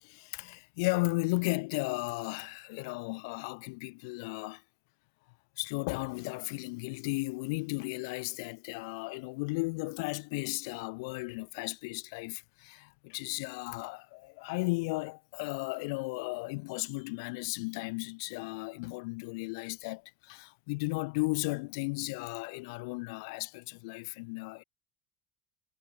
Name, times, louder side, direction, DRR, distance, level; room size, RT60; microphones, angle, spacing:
voice 1, 0.0-4.6 5.6-24.6, left 28 dB, 75° left, 0.5 m, -35 dB
cardioid pair, 175°, 2 cm